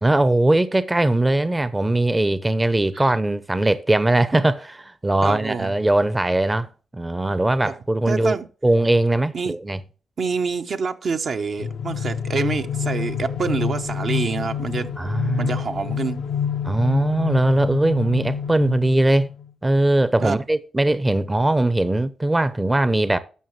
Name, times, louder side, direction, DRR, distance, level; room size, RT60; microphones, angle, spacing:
voice 1, 0.0-6.7 6.9-8.4 8.6-9.8 15.0-15.5 16.6-19.3 19.6-23.2, right 1 dB, 20° right, 0.7 m, -20 dB
voice 2, 5.2-5.7 7.6-7.7 8.1-8.5 9.3-9.6 10.2-14.9 15.4-16.2 20.2-20.4, right 5 dB, 60° right, 0.8 m, -26 dB
sound 1, 11.6-19.5, left 7 dB, 75° left, 0.5 m, -28 dB
11.0 x 6.3 x 3.1 m
supercardioid pair, 55°, 0 cm